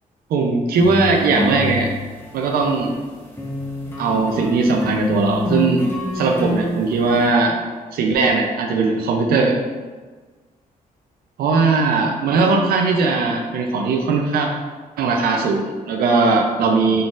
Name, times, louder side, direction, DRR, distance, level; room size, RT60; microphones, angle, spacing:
voice 1, 0.3-1.9 2.3-2.9 4.0-5.8 6.1-7.6 7.9-9.6 11.4-14.5 15.0-17.0, right 3 dB, 80° right, 2 dB, 0.4 m, -19 dB
sound 1, 0.7-3.0 3.4-7.3, equal, 15° left, 0.8 m, -26 dB
3.9 x 3.9 x 2.4 m, 1.3 s
cardioid pair, 110°, 15 cm